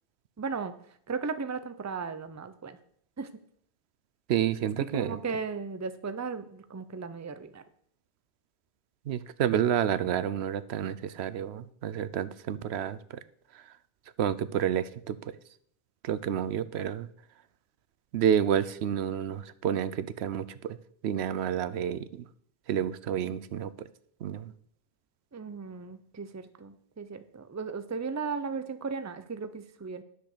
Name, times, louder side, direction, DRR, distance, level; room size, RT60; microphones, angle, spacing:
voice 1, 0.4-0.8 1.1-2.8 3.2-3.4 4.8-7.6 25.3-30.0, right 5 dB, 20° right, 11 dB, 0.5 m, -36 dB
voice 2, 4.3-5.2 9.1-13.2 13.5-13.6 14.2-15.3 16.0-17.1 18.1-20.8 21.0-22.2 22.7-23.9 24.2-24.5, right 9 dB, 85° right, 15 dB, 0.9 m, -29 dB
10.5 x 6.5 x 6.6 m, 0.66 s
omnidirectional pair, 1.1 m